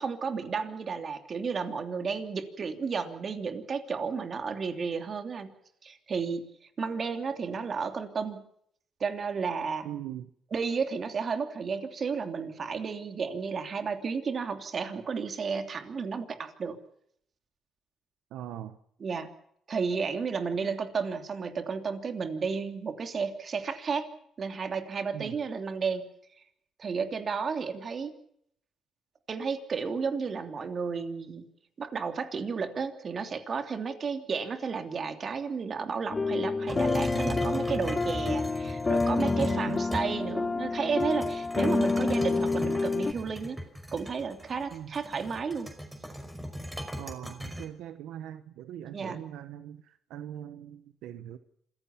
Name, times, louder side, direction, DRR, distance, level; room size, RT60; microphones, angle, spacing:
voice 1, 0.0-5.5 5.8-6.5 6.8-8.4 9.0-9.9 10.5-16.8 19.0-19.3 19.7-24.1 24.4-26.1 26.8-28.1 29.3-31.4 31.8-43.6 43.9-45.7 48.9-49.2, right 5 dB, 45° right, 3.0 m, -32 dB
voice 2, 9.8-10.3 18.3-18.8 25.1-25.4 39.5-39.8 44.7-44.9 47.0-51.4, right 11 dB, 90° right, 1.0 m, -41 dB
sound 1, 36.1-43.1, left 3 dB, 30° left, 1.1 m, -28 dB
sound 2, 36.7-40.4 41.0-47.7, equal, 10° right, 5.2 m, -38 dB
27.0 x 16.0 x 7.2 m
cardioid pair, 90°, 0 cm